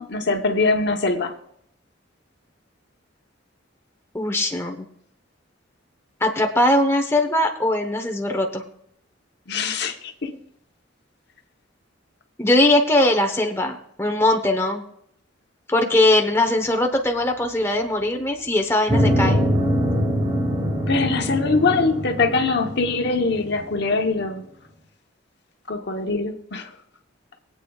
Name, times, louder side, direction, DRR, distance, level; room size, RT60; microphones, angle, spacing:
voice 1, 0.0-1.3 9.5-10.4 20.9-24.4 25.7-26.7, left 3 dB, 60° left, 4 dB, 1.0 m, -23 dB
voice 2, 4.1-4.9 6.2-8.6 12.4-14.8 15.7-19.4, left 1 dB, 15° left, 3 dB, 1.0 m, -20 dB
sound 1, 18.9-23.8, equal, 20° right, 2.7 m, -23 dB
22.5 x 8.3 x 2.4 m, 0.72 s
head